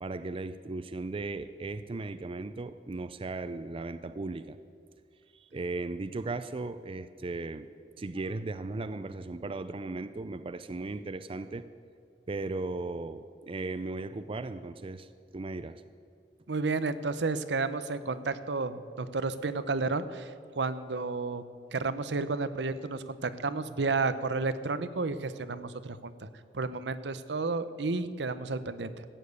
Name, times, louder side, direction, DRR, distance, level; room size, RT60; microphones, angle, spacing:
voice 1, 0.0-4.6 5.3-7.7 8.0-11.6 12.3-15.8, right 3 dB, 30° right, 11 dB, 0.4 m, -37 dB
voice 2, 16.5-21.4 21.7-26.3 26.5-29.1, right 3 dB, 75° right, 13 dB, 0.8 m, -32 dB
14.5 x 8.9 x 8.2 m, 2.3 s
head